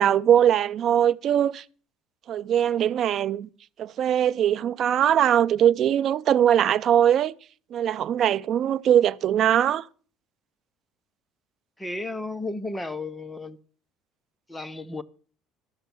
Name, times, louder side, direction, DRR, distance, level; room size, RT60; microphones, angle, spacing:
voice 1, 0.0-1.6 2.3-3.5 3.8-7.3 7.7-9.9, right 10 dB, 45° right, 0.5 m, -21 dB
voice 2, 11.8-13.6 14.5-15.0, left 2 dB, 10° left, 0.7 m, -33 dB
13.0 x 7.0 x 7.0 m
cardioid pair, 130°, 0 cm